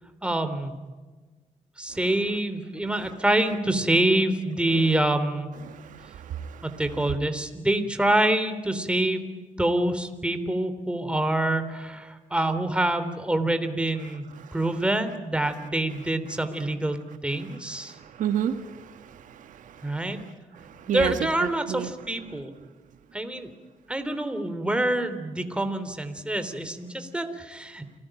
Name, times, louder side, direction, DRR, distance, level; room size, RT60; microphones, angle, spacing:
voice 1, 0.2-0.8 1.8-5.5 6.6-9.3 9.6-14.2 14.5-18.0 19.8-20.2 20.9-22.5 23.1-23.5 23.9-27.9, right 1 dB, 10° right, 9 dB, 3.5 m, -26 dB
voice 2, 5.7-6.7 14.4-14.6 17.8-20.1 20.6-21.1 21.4-21.9, right 9 dB, 80° right, 9 dB, 1.7 m, -32 dB
29.0 x 19.5 x 9.0 m, 1.3 s
cardioid pair, 80°, 13 cm